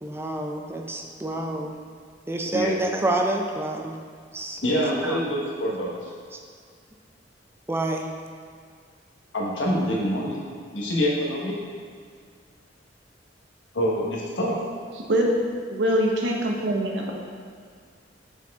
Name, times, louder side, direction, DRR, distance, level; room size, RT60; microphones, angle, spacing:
voice 1, 0.0-1.7 2.3-4.0 4.3-4.6 5.0-5.2 7.7-8.1, right 2 dB, 15° right, 2 dB, 0.5 m, -28 dB
voice 2, 4.6-6.1 9.3-10.4 10.7-11.5 13.7-14.6, equal, 85° left, -4 dB, 1.3 m, -25 dB
voice 3, 15.7-17.1, equal, 85° right, 0 dB, 0.9 m, -23 dB
6.8 x 4.4 x 3.6 m, 2.1 s
head